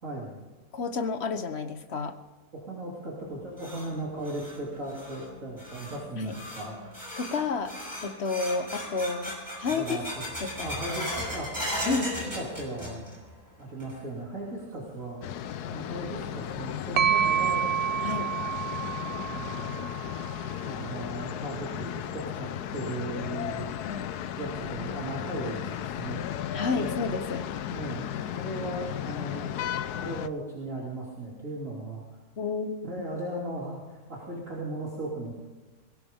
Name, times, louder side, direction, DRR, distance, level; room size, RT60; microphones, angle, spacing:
voice 1, 0.0-0.4 2.5-6.8 9.7-10.2 10.6-13.1 13.6-15.2 15.7-17.7 19.2-19.9 20.6-23.7 24.4-26.3 26.7-26.9 27.7-28.1 28.3-29.5 30.0-32.2 32.8-35.3, right 1 dB, 55° right, -5 dB, 3.4 m, -37 dB
voice 2, 0.7-2.2 6.2-6.3 7.2-7.8 8.0-10.0 10.4-10.7 11.9-12.3 18.0-18.3 23.8-24.0 26.5-27.5 32.4-32.9, left 4 dB, 45° left, 9 dB, 1.3 m, -31 dB
sound 1, 3.2-13.3 13.6-14.2 14.6-14.7 15.4-15.5 17.1-17.2 17.7-17.8 18.3-18.4 18.8-18.9 19.5-19.8, equal, 10° right, 5.9 m, -38 dB
sound 2, 15.2-30.3, left 10 dB, 80° left, 1.3 m, -35 dB
sound 3, 17.0-20.7, right 9 dB, 90° right, 0.5 m, -29 dB
20.5 x 17.5 x 3.7 m, 1.3 s
omnidirectional pair, 1.6 m